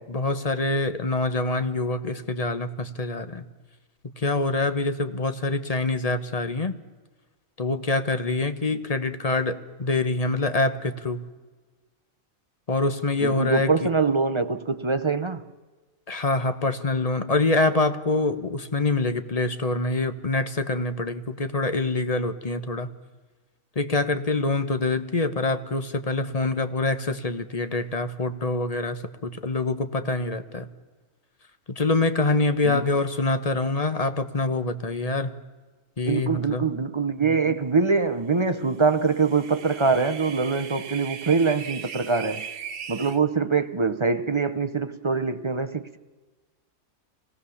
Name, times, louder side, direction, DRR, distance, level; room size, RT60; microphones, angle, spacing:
voice 1, 0.1-3.4 4.2-6.7 7.6-11.2 12.7-13.9 16.1-22.9 23.8-30.7 31.7-35.3 36.0-36.7, left 2 dB, 30° left, 1.0 m, -25 dB
voice 2, 13.2-15.4 32.6-32.8 36.1-42.5 42.9-46.0, right 4 dB, 30° right, 0.5 m, -24 dB
sound 1, 38.9-43.2, right 7 dB, 85° right, 1.5 m, -38 dB
25.5 x 18.5 x 7.1 m
omnidirectional pair, 1.4 m